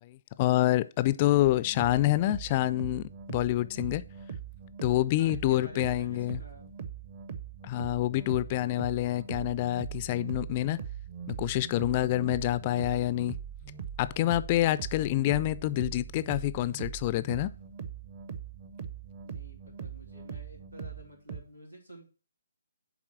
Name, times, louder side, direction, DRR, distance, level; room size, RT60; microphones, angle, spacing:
voice 1, 0.0-4.0 4.8-6.4 7.6-10.8 11.3-13.4 14.0-17.5, left 15 dB, 30° left, 0.3 m, -27 dB
sound 1, 1.4-21.4, right 8 dB, 35° right, 0.8 m, -41 dB
voice 2, 5.1-6.7 19.2-22.1, equal, 85° right, 3.0 m, -50 dB
9.0 x 3.6 x 5.9 m
figure-of-eight pair, 135°, 0 cm